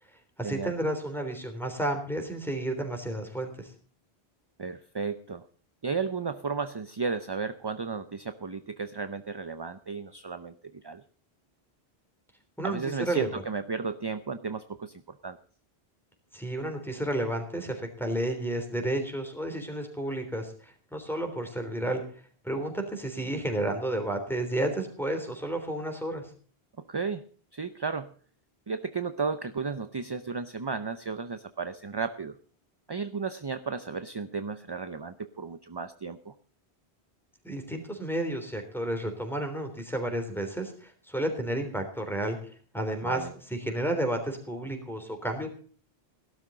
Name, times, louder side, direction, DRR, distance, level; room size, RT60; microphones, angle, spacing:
voice 1, 0.4-3.7 12.6-13.4 16.3-22.0 22.4-26.2 37.4-42.4 42.7-45.5, right 1 dB, ahead, 5 dB, 3.4 m, -31 dB
voice 2, 4.6-5.4 5.8-11.0 12.6-15.4 26.8-27.2 27.5-28.1 28.7-32.4 32.9-36.3 43.0-43.3, right 5 dB, 30° right, 11 dB, 0.5 m, -34 dB
17.5 x 12.0 x 3.8 m, 0.43 s
omnidirectional pair, 1.1 m